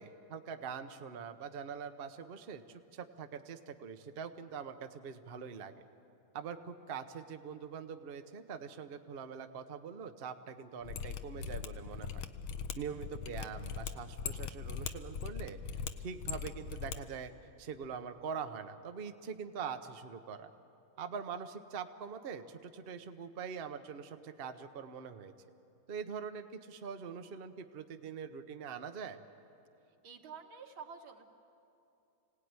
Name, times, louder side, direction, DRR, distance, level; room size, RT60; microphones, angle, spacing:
voice 1, 0.0-5.8 6.3-12.3 12.8-17.3 17.6-20.5 21.0-25.3 25.9-29.2, right 6 dB, 45° right, 7 dB, 0.7 m, -43 dB
Mechanisms, 10.8-17.0 17.2-17.3, left 7 dB, 90° left, 1.7 m, -40 dB
voice 2, 30.0-31.2, right 6 dB, 85° right, 3 dB, 2.3 m, -49 dB
25.5 x 17.5 x 9.6 m, 2.8 s
omnidirectional pair, 2.2 m